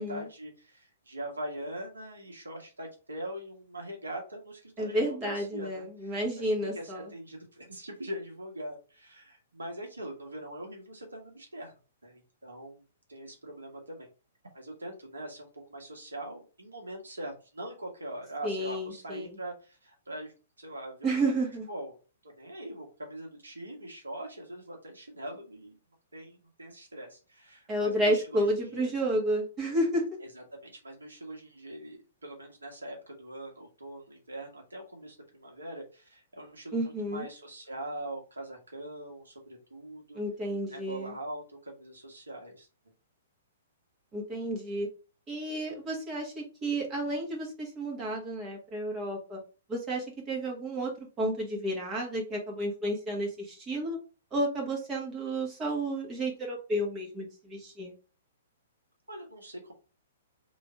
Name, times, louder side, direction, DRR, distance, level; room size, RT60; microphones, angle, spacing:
voice 1, 0.0-11.7 12.0-12.8 13.1-14.1 14.5-21.4 21.7-22.0 22.2-25.8 26.1-28.9 30.3-40.2 40.7-42.7 59.1-59.7, right 1 dB, 75° right, 1 dB, 1.5 m, -42 dB
voice 2, 4.8-7.1 18.4-19.3 21.0-21.6 27.7-30.0 36.7-37.2 40.1-41.1 44.1-44.9 45.3-49.4 49.7-54.0 54.3-57.9, right 1 dB, 20° right, -2 dB, 1.8 m, -31 dB
3.4 x 3.1 x 4.5 m, 0.34 s
figure-of-eight pair, 115°, 0 cm